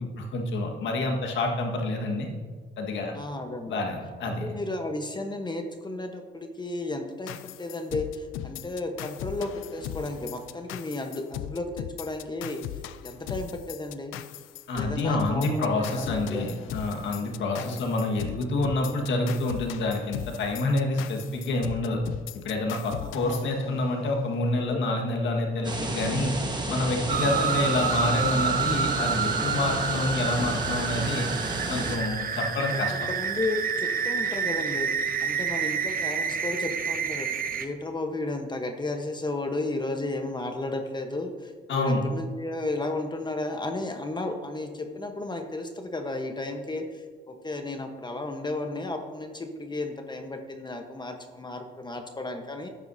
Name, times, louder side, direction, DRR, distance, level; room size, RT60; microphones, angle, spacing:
voice 1, 0.0-2.3 2.8-3.1 3.7-4.5 14.7-22.0 22.3-26.4 26.7-31.3 31.7-32.9 41.7-42.0, left 2 dB, 70° left, 1 dB, 1.7 m, -27 dB
voice 2, 3.1-3.8 4.2-12.6 13.0-14.1 14.7-16.8 17.5-17.8 23.0-23.8 24.7-24.8 27.3-27.8 32.6-34.9 35.2-52.7, left 2 dB, 20° left, 5 dB, 1.1 m, -34 dB
sound 1, 7.3-24.1, left 11 dB, 90° left, 0.4 m, -38 dB
sound 2, 25.6-32.0, right 2 dB, 20° right, 1.4 m, -32 dB
sound 3, 27.1-37.7, right 6 dB, 45° right, 0.8 m, -29 dB
13.0 x 8.9 x 2.8 m, 1.5 s
cardioid pair, 90°, 20 cm